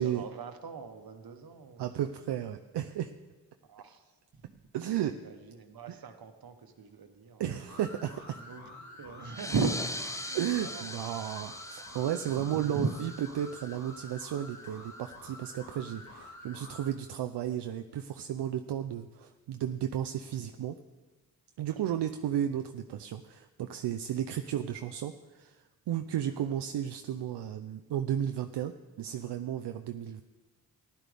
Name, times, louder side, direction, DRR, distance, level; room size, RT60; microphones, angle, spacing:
voice 1, 0.0-1.8 2.1-2.2 3.6-4.5 5.1-7.4 8.3-9.8 10.0-10.9 12.4-13.1 20.3-20.4 24.3-24.4 26.3-26.5, right 4 dB, 60° right, 7 dB, 1.3 m, -38 dB
voice 2, 1.8-3.1 4.7-5.1 7.4-8.4 10.3-12.9 13.4-20.8 21.6-30.2, right 10 dB, 80° right, 7 dB, 0.6 m, -33 dB
sound 1, 7.7-16.9, left 1 dB, 45° left, 1.9 m, -49 dB
sound 2, 9.2-14.4, left 1 dB, 10° left, 0.7 m, -42 dB
15.0 x 11.0 x 3.5 m, 1.2 s
cardioid pair, 70°, 41 cm